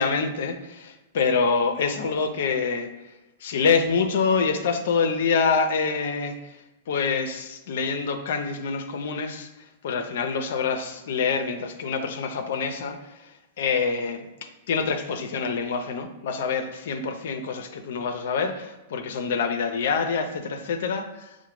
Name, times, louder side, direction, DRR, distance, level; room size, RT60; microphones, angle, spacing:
voice 1, 0.0-2.9 3.4-9.5 9.8-14.3 14.7-21.4, left 5 dB, 70° left, 7 dB, 0.4 m, -26 dB
5.6 x 2.1 x 3.1 m, 1.0 s
hypercardioid pair, 110°, 0 cm